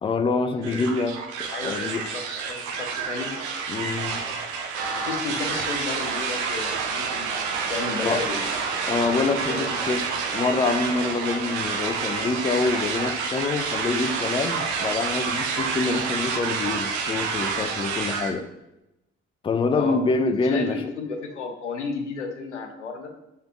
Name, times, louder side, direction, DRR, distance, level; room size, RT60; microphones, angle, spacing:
voice 1, 0.0-2.0 3.7-4.2 8.0-8.2 8.9-10.1 10.3-18.5 19.4-20.8, left 3 dB, 15° left, 8 dB, 0.3 m, -26 dB
voice 2, 0.5-0.9 1.5-3.3 4.9-7.3 7.7-8.5 9.5-9.9 19.7-20.0 20.4-23.1, left 4 dB, 85° left, 4 dB, 0.5 m, -33 dB
sound 1, 0.6-18.3, right 5 dB, 60° right, 0.6 m, -28 dB
3.6 x 3.3 x 3.0 m, 0.92 s
figure-of-eight pair, 40°, 34 cm